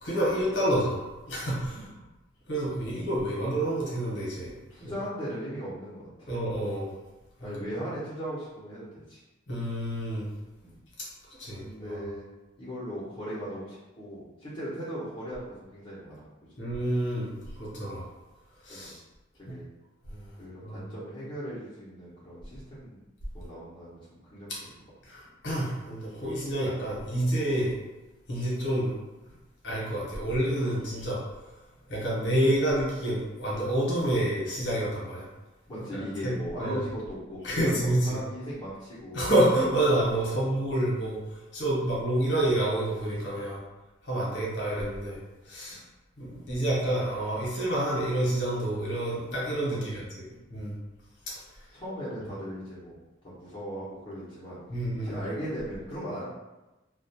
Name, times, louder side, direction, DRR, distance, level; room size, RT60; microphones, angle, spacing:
voice 1, 0.0-1.9 2.5-4.5 6.3-6.9 7.4-7.5 9.5-10.3 11.0-11.1 11.4-12.0 16.6-17.3 17.6-18.1 18.6-19.0 20.1-20.3 20.6-20.8 25.0-27.7 28.3-29.0 29.6-31.2 31.9-35.3 35.9-36.3 36.6-36.8 37.4-38.2 39.1-43.6 44.0-45.2 45.4-45.8 46.2-50.0 50.5-50.7 54.7-55.2, right 1 dB, 60° left, -5 dB, 0.8 m, -28 dB
voice 2, 4.7-6.3 7.4-9.2 10.6-10.7 11.6-12.2 12.6-16.6 18.7-18.9 19.4-19.7 20.4-23.0 23.3-24.7 35.7-39.4 40.3-40.5 41.8-41.9 45.7-45.8 49.6-50.0 50.3-50.4 51.7-53.0 53.2-54.6 55.0-56.2, equal, 25° left, -13 dB, 0.7 m, -38 dB
2.3 x 2.1 x 2.7 m, 1.1 s
head